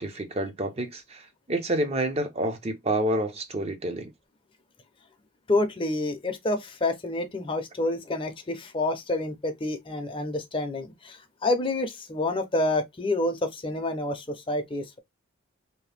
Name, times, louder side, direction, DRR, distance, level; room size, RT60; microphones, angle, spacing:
voice 1, 0.0-4.1, right 1 dB, 30° right, 0.6 m, -29 dB
voice 2, 5.5-15.0, left 2 dB, 25° left, 0.6 m, -28 dB
2.8 x 2.2 x 3.2 m
head